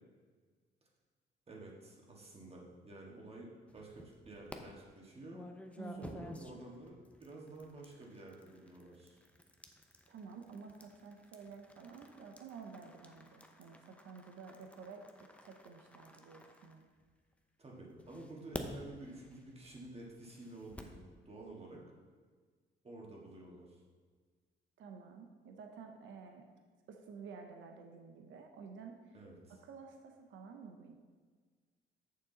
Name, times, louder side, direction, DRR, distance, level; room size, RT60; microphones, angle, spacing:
voice 1, 1.5-5.4 5.9-9.2 17.6-21.8 22.8-23.8 29.1-29.6, right 2 dB, 30° right, -2 dB, 1.7 m, -51 dB
sound 1, 3.7-4.6 5.3-17.3 18.0-21.0, left 1 dB, 5° left, 0.7 m, -52 dB
voice 2, 5.8-6.3 10.1-16.9 24.8-26.5 26.9-29.2 29.5-31.0, right 5 dB, 75° right, 4 dB, 0.7 m, -51 dB
6.7 x 6.4 x 3.9 m, 1.5 s
cardioid pair, 90°, 20 cm